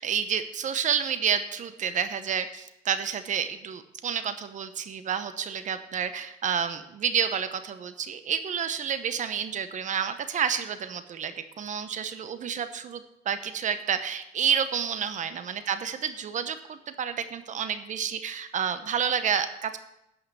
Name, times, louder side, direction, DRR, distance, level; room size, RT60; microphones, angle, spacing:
voice 1, 0.0-19.8, right 7 dB, 45° right, 11 dB, 0.9 m, -29 dB
11.5 x 5.7 x 6.9 m, 0.83 s
cardioid pair, 110°, 17 cm